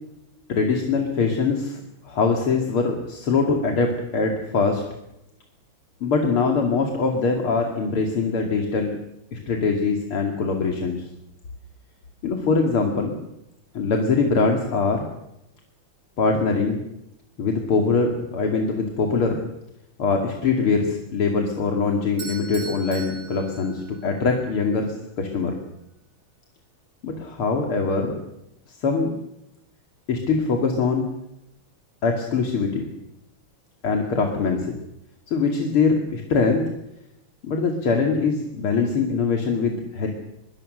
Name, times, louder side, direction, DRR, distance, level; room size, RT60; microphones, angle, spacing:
voice 1, 0.5-4.8 6.0-9.0 9.3-11.1 12.2-13.2 13.7-15.1 16.2-16.8 17.4-19.4 20.0-25.6 27.0-28.1 28.7-29.1 30.1-31.1 32.0-32.9 33.8-34.7 35.3-36.7 37.4-40.1, left 4 dB, 75° left, 3 dB, 3.4 m, -23 dB
Bell / Doorbell, 22.2-24.3, right 3 dB, 65° right, 4.7 m, -39 dB
24.5 x 23.0 x 6.6 m, 0.86 s
omnidirectional pair, 2.4 m